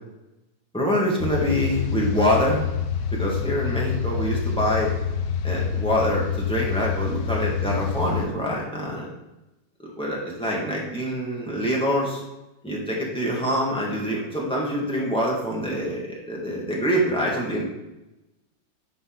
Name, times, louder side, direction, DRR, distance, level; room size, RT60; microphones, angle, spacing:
voice 1, 0.7-2.6 3.1-4.9 5.4-9.1 9.8-12.2 12.6-17.6, equal, 5° left, -4 dB, 1.7 m, -25 dB
sound 1, 1.2-8.3, left 7 dB, 85° left, 1.5 m, -27 dB
10.5 x 4.1 x 3.9 m, 0.96 s
omnidirectional pair, 2.2 m